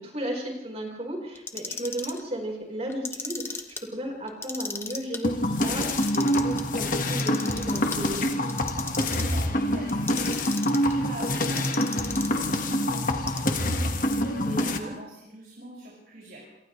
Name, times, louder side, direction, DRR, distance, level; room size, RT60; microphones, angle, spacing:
voice 1, 0.0-3.6 3.9-8.2 14.4-14.9, right 1 dB, 35° right, 0 dB, 4.8 m, -34 dB
Clock, 1.4-2.2 2.9-3.8 4.3-5.2 5.7-6.6 7.1-8.0 8.5-9.4 9.9-10.9 11.6-12.5 13.1-13.7, left 4 dB, 15° left, 1.2 m, -36 dB
sound 1, 5.2-14.8, left 1 dB, 45° left, 1.7 m, -26 dB
voice 2, 8.6-16.7, right 1 dB, 50° right, -4 dB, 6.6 m, -42 dB
28.0 x 27.5 x 3.4 m, 0.84 s
head